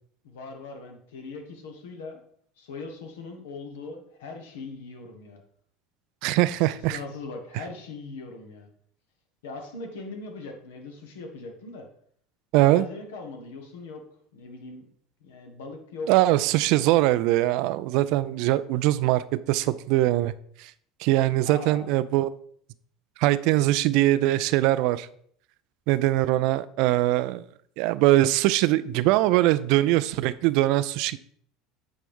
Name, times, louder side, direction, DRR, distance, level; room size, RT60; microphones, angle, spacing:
voice 1, 0.2-2.2 2.6-5.4 6.9-8.7 9.4-11.9 12.6-14.0 14.3-14.9 15.2-16.1 21.4-21.9, left 3 dB, 70° left, 4 dB, 1.2 m, -40 dB
voice 2, 6.2-7.0 12.5-12.9 16.1-20.3 20.6-20.7 21.0-22.3 23.2-25.1 25.9-27.4 27.8-31.2, right 16 dB, 60° right, 16 dB, 0.3 m, -22 dB
8.5 x 4.5 x 3.5 m, 0.62 s
figure-of-eight pair, 70°, 0 cm